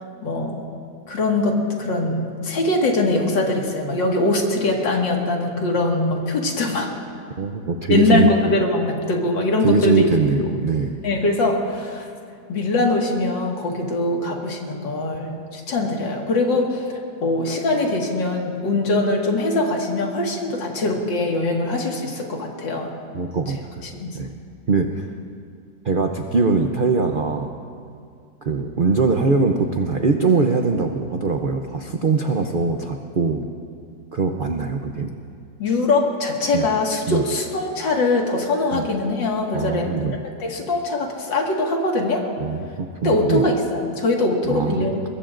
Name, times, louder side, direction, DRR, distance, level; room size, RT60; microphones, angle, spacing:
voice 1, 0.2-0.6 1.1-6.9 7.9-10.0 11.0-12.1 12.5-16.9 17.2-23.0 23.5-23.6 23.8-24.2 35.6-40.0 40.4-42.2 43.0-45.0, left 2 dB, 90° left, 0 dB, 2.5 m, -22 dB
voice 2, 7.4-8.3 9.6-11.0 23.1-23.6 24.1-24.3 24.7-25.1 25.8-27.5 28.4-33.4 34.1-35.1 36.5-36.7 37.1-37.2 38.7-38.8 39.5-40.1 42.4-43.5 44.5-45.0, right 4 dB, 80° right, 4 dB, 0.4 m, -21 dB
23.0 x 21.5 x 2.5 m, 2.3 s
omnidirectional pair, 1.9 m